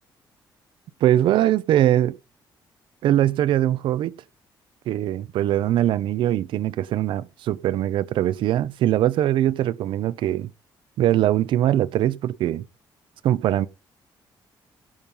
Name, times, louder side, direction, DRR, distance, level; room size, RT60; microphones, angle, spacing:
voice 1, 1.0-2.1 3.0-4.1 4.9-10.5 11.0-12.6 13.2-13.7, right 12 dB, 80° right, 0.6 m, -21 dB
16.5 x 5.6 x 5.4 m
cardioid pair, 155°, 8 cm